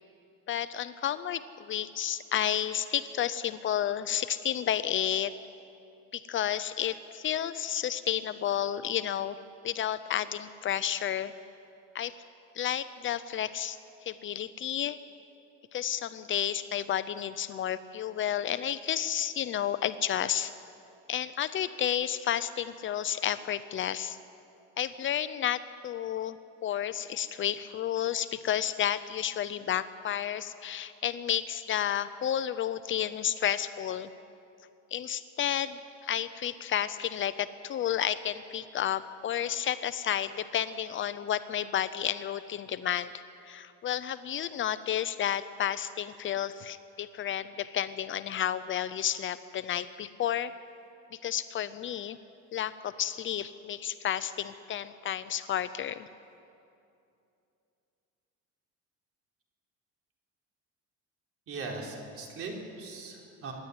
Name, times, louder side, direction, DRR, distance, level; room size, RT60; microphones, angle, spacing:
voice 1, 0.5-5.3 6.1-9.4 9.6-11.3 11.9-12.1 12.5-13.8 14.0-15.0 15.7-20.5 21.1-24.2 24.8-26.4 26.6-34.1 34.9-50.5 51.1-52.2 52.5-56.1, left 10 dB, 40° left, 13 dB, 0.6 m, -31 dB
voice 2, 61.5-63.5, right 3 dB, 50° right, 0 dB, 4.3 m, -39 dB
25.0 x 11.0 x 9.7 m, 2.6 s
cardioid pair, 130°, 30 cm